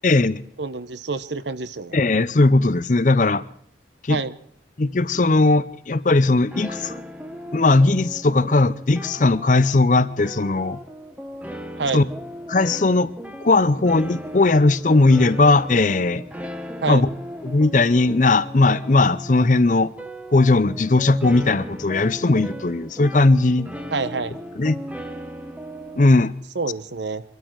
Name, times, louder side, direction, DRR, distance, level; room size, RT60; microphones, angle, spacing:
voice 1, 0.0-0.4 1.9-3.4 4.0-4.2 4.8-7.0 7.5-10.8 11.9-12.0 12.5-13.1 13.4-16.2 16.9-17.1 17.4-19.9 20.3-23.7 24.6-24.8 26.0-26.3, left 2 dB, 45° left, 0.6 m, -18 dB
voice 2, 0.6-2.0 4.1-4.4 11.8-12.1 16.8-17.1 23.9-24.4 26.5-27.2, right 4 dB, 75° right, 0.9 m, -27 dB
sound 1, 6.5-26.1, equal, 10° right, 1.0 m, -37 dB
24.5 x 13.0 x 4.6 m
head